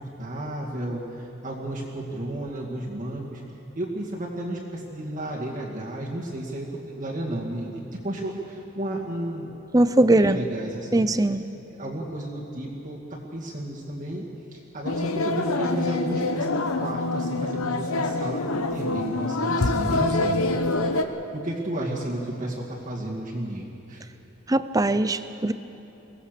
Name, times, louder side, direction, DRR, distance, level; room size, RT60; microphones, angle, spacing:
voice 1, 0.0-3.4 3.8-9.5 9.9-11.1 11.8-14.3 14.5-20.8 21.3-24.0, right 1 dB, 35° right, -4 dB, 2.2 m, -33 dB
voice 2, 9.7-10.4 10.9-11.4 24.5-25.5, right 1 dB, 15° right, 12 dB, 0.5 m, -20 dB
sound 1, 14.8-21.0, left 2 dB, 85° left, 1.0 m, -25 dB
23.5 x 17.0 x 6.8 m, 3.0 s
head